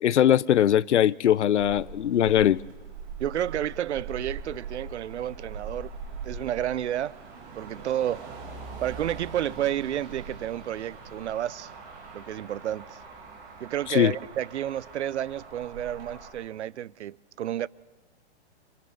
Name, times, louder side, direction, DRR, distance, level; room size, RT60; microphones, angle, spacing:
voice 1, 0.0-2.6 13.9-14.1, left 10 dB, 90° left, 0.7 m, -21 dB
Motor vehicle (road), 1.6-16.3, right 4 dB, 35° right, 7.9 m, -42 dB
voice 2, 3.2-5.9 6.2-7.2 7.6-8.3 8.8-11.7 12.1-13.0 13.6-17.7, right 11 dB, 80° right, 0.7 m, -31 dB
29.0 x 28.5 x 4.0 m
hypercardioid pair, 155°, 34 cm